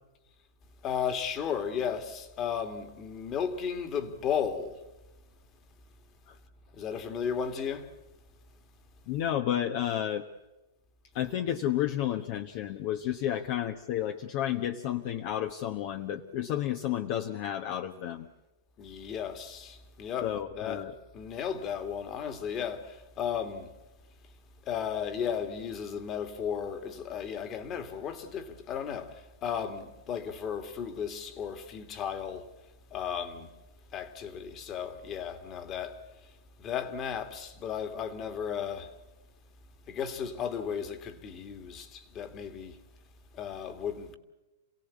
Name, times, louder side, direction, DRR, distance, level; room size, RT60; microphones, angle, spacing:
voice 1, 0.8-4.8 6.7-7.9 18.8-20.9 21.1-23.7 24.7-29.1 29.4-32.5 32.9-33.5 33.9-36.0 36.6-38.9 39.9-42.7 43.4-44.2, left 7 dB, 30° left, 2.1 m, -34 dB
voice 2, 9.1-10.3 11.1-18.3 20.2-20.9, left 11 dB, 45° left, 1.1 m, -31 dB
28.0 x 17.0 x 8.4 m
hypercardioid pair, 140°, 0 cm